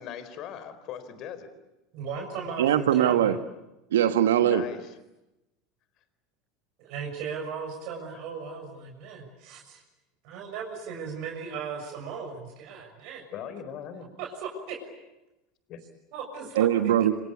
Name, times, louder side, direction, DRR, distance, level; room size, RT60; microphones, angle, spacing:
voice 1, 0.0-1.5 4.4-4.9 13.3-14.1 15.7-15.8, left 8 dB, 45° left, 12 dB, 4.2 m, -39 dB
voice 2, 1.9-3.3 6.8-9.8 10.2-13.2 14.2-14.3 14.7-14.8 16.1-16.7, right 6 dB, 55° right, 2 dB, 6.7 m, -37 dB
voice 3, 2.6-3.4 3.9-4.6 16.6-17.1, right 10 dB, 70° right, 10 dB, 1.3 m, -21 dB
26.5 x 26.5 x 8.5 m, 0.97 s
figure-of-eight pair, 80°, 0 cm